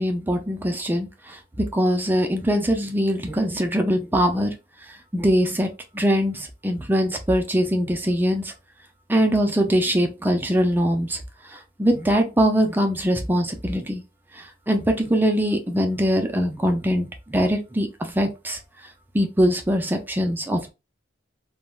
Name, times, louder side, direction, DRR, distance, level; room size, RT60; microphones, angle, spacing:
voice 1, 0.0-4.5 5.1-8.5 9.1-11.2 11.5-14.0 14.3-18.6 19.1-20.7, equal, 10° right, 5 dB, 0.4 m, -22 dB
3.3 x 2.1 x 2.3 m, 0.26 s
head